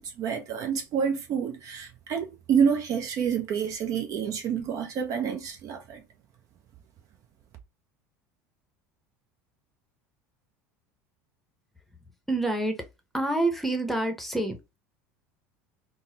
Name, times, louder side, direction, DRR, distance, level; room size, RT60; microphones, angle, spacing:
voice 1, 0.0-6.0, right 7 dB, 50° right, 0.6 m, -28 dB
voice 2, 12.3-12.8 13.1-14.6, right 2 dB, ahead, 0.8 m, -27 dB
3.9 x 2.1 x 2.7 m
hypercardioid pair, 80°, 8 cm